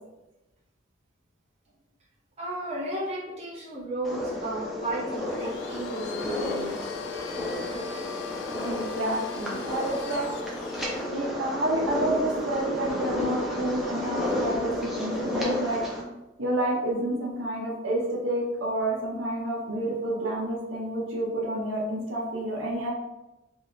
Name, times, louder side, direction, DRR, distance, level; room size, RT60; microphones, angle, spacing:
voice 1, 2.4-7.0, right 1 dB, 30° right, -5 dB, 0.8 m, -33 dB
sound 1, 4.0-16.0, left 1 dB, ahead, 0.6 m, -32 dB
Domestic sounds home sounds, 5.3-11.2, left 5 dB, 60° left, 0.3 m, -41 dB
voice 2, 8.6-10.3 11.1-15.8 16.4-22.9, right 1 dB, 75° right, -2 dB, 0.9 m, -29 dB
3.4 x 3.1 x 2.7 m, 0.98 s
head